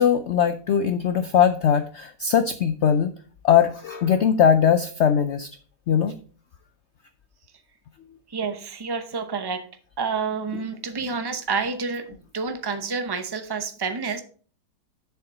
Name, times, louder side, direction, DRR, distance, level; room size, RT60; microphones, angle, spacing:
voice 1, 0.0-3.1 3.4-5.5 5.9-6.1, left 8 dB, 85° left, 10 dB, 0.6 m, -20 dB
voice 2, 8.3-9.7 10.0-14.2, right 5 dB, 25° right, 8 dB, 0.5 m, -29 dB
7.3 x 6.8 x 4.1 m, 0.41 s
omnidirectional pair, 1.8 m